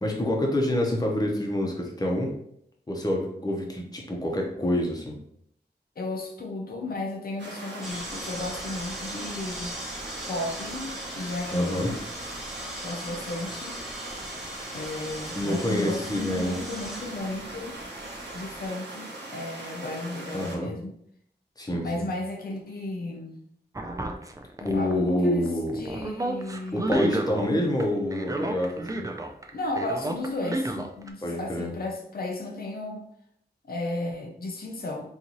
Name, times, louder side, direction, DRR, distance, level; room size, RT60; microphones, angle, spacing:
voice 1, 0.0-2.3 2.9-5.2 11.5-11.9 15.4-16.6 20.3-20.7 21.6-22.1 24.6-25.8 26.7-29.1 31.2-31.7, left 1 dB, 20° left, -1 dB, 0.8 m, -27 dB
voice 2, 6.0-9.8 10.3-12.0 12.8-13.8 14.7-17.8 18.3-20.9 21.7-23.3 24.7-27.0 29.5-33.1 33.6-35.1, left 2 dB, 60° left, 2 dB, 0.6 m, -34 dB
sound 1, 7.4-20.6, right 2 dB, 80° right, 0.9 m, -40 dB
sound 2, 7.8-18.7, equal, ahead, 0.9 m, -40 dB
sound 3, 23.7-25.2 25.5-27.5 27.8-29.5 29.7-31.1, right 1 dB, 20° right, 0.4 m, -30 dB
3.9 x 2.6 x 3.0 m, 0.70 s
wide cardioid pair, 75°, 18 cm